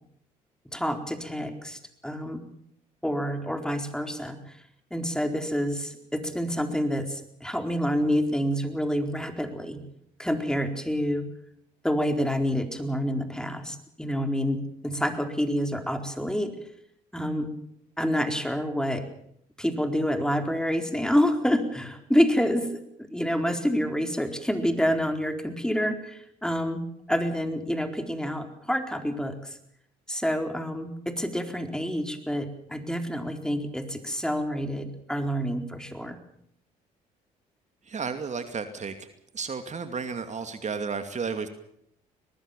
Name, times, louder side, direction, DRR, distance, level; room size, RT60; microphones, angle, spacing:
voice 1, 0.7-2.4 3.0-4.4 4.9-9.8 10.2-11.3 11.8-16.6 17.1-17.5 18.0-19.1 19.6-29.6 30.1-36.2, equal, 5° left, 6 dB, 4.3 m, -28 dB
voice 2, 37.9-39.1 39.3-41.5, right 5 dB, 40° right, 8 dB, 2.5 m, -32 dB
23.0 x 19.5 x 7.2 m, 0.69 s
hypercardioid pair, 60°, 18 cm